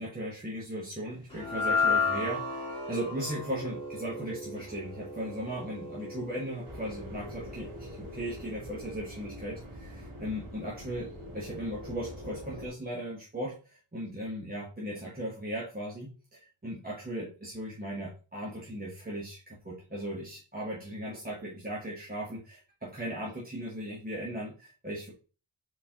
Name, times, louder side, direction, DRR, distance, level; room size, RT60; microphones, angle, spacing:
voice 1, 0.0-11.1 11.3-25.1, equal, 20° right, -5 dB, 1.0 m, -37 dB
sound 1, 1.3-7.7, left 4 dB, 10° left, 1.6 m, -33 dB
sound 2, 6.6-12.7, equal, 80° right, 1.8 m, -44 dB
4.6 x 4.0 x 2.8 m, 0.36 s
wide cardioid pair, 160°, 49 cm